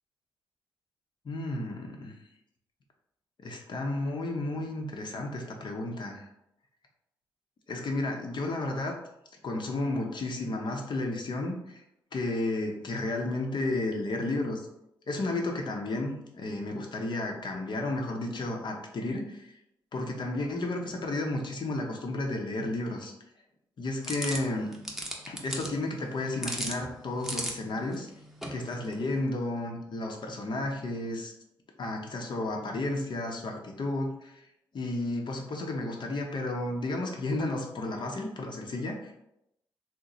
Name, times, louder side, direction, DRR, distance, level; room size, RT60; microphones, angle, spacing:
voice 1, 1.2-2.1 3.4-6.2 7.7-9.0 9.4-11.8 12.1-14.6 15.1-19.5 19.9-23.1 23.8-24.7 25.3-28.1 28.5-31.3 31.8-34.4 34.7-39.1, left 2 dB, 55° left, 2 dB, 0.8 m, -32 dB
sound 1, 24.0-29.2, equal, 5° right, 0.8 m, -39 dB
3.0 x 2.1 x 3.9 m, 0.83 s
supercardioid pair, 50°, 9 cm